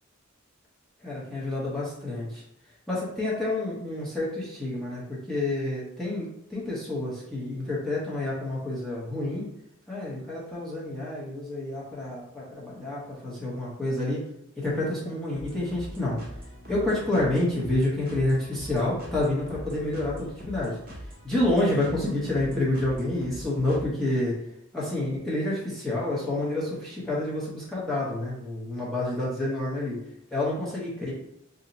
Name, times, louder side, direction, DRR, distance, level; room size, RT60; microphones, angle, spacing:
voice 1, 1.0-2.4 2.9-9.5 9.9-14.2 14.6-16.2 16.7-20.8 21.2-24.3 24.7-30.0 30.3-31.1, left 1 dB, ahead, -7 dB, 0.7 m, -28 dB
sound 1, 15.3-23.9, equal, 45° right, 0.8 m, -42 dB
2.7 x 2.1 x 3.8 m, 0.80 s
head